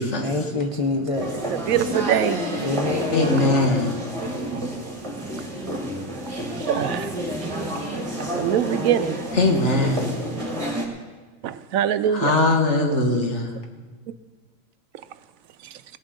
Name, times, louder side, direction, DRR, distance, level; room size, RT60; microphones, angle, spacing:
voice 1, 0.2-1.7 2.6-3.4, left 3 dB, 30° left, 0.7 m, -26 dB
sound 1, 1.1-10.9, right 1 dB, 25° right, 2.1 m, -29 dB
voice 2, 1.7-2.4 4.5-4.6 6.5-7.1 8.2-9.2 11.4-12.4, right 10 dB, 80° right, 1.0 m, -23 dB
voice 3, 3.1-3.9 9.3-10.1 12.1-13.5, left 2 dB, 55° left, 1.9 m, -21 dB
17.0 x 11.0 x 5.2 m
omnidirectional pair, 1.4 m